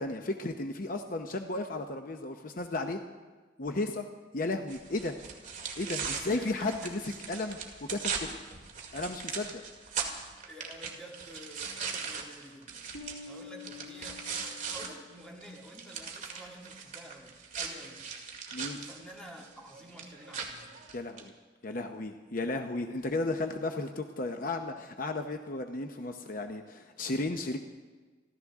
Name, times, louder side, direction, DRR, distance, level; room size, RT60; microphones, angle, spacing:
voice 1, 0.0-3.0 3.6-4.1 4.3-5.2 5.8-7.0 7.3-7.6 7.9-8.4 8.9-9.6 18.5-18.8 20.9-21.3 21.6-27.6, left 2 dB, 45° left, 5 dB, 0.8 m, -34 dB
sound 1, 4.7-14.9 15.2-21.3, right 6 dB, 40° right, 2.1 m, -39 dB
voice 2, 6.1-7.0 10.5-12.9 13.3-18.1 18.7-20.8, right 1 dB, 5° left, -2 dB, 2.3 m, -49 dB
Bass guitar, 12.9-15.4, left 5 dB, 90° left, 2.7 m, -48 dB
28.5 x 12.5 x 3.6 m, 1.4 s
head